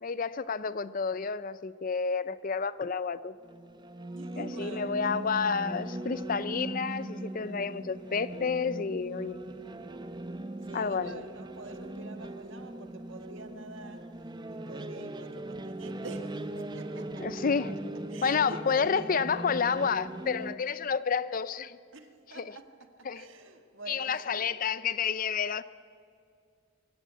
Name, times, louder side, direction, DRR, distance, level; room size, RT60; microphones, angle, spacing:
voice 1, 0.0-3.3 4.4-9.4 10.7-11.2 17.2-17.7 18.2-21.8 22.3-22.5 23.1-23.2 23.9-25.6, left 5 dB, 40° left, 0.5 m, -30 dB
sound 1, 3.4-20.6, right 1 dB, 20° right, 0.8 m, -40 dB
voice 2, 4.1-5.1 10.6-17.4 18.1-19.1 21.9-24.5, right 2 dB, 65° right, 1.8 m, -47 dB
25.0 x 15.5 x 8.2 m
head